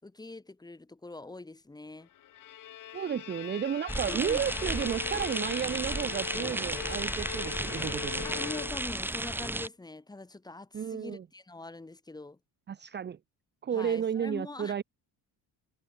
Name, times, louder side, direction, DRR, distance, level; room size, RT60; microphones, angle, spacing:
voice 1, 0.0-2.1 4.1-4.5 8.2-12.4 13.7-14.8, left 2 dB, 10° left, 4.0 m, -43 dB
Bowed string instrument, 2.1-9.1, left 12 dB, 50° left, 2.8 m, -41 dB
voice 2, 2.9-8.2 10.7-11.2 12.7-13.2 13.6-14.8, right 8 dB, 25° right, 1.0 m, -32 dB
sound 1, 3.9-9.7, right 1 dB, 5° right, 2.2 m, -34 dB
cardioid pair, 165°, 39 cm